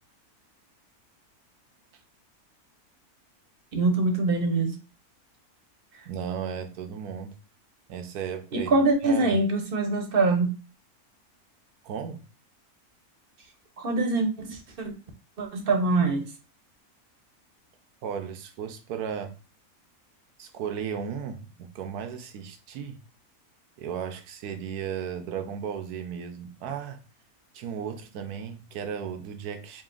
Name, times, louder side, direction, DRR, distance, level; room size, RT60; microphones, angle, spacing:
voice 1, 3.7-4.8 8.5-10.5 13.8-14.9 15.4-16.3, right 3 dB, 45° right, 0.9 m, -24 dB
voice 2, 6.1-7.4 7.9-9.5 11.8-12.2 18.0-19.4 20.4-23.0 23.8-27.0 27.5-29.8, right 7 dB, 85° right, 1.2 m, -35 dB
4.0 x 2.3 x 3.8 m
omnidirectional pair, 1.6 m